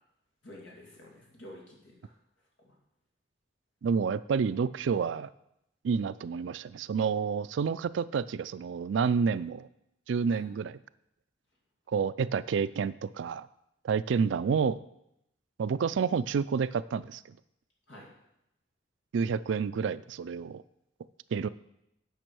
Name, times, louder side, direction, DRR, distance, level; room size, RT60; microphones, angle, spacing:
voice 1, 0.4-2.1 2.6-2.7 10.3-10.4 17.9-18.1, left 1 dB, 80° left, -1 dB, 2.7 m, -50 dB
voice 2, 3.8-5.3 5.8-9.7 10.1-10.8 11.9-13.5 13.8-14.8 15.6-17.2 19.1-20.6 21.3-21.5, right 6 dB, 80° right, 17 dB, 0.3 m, -29 dB
9.2 x 5.4 x 6.1 m, 0.81 s
head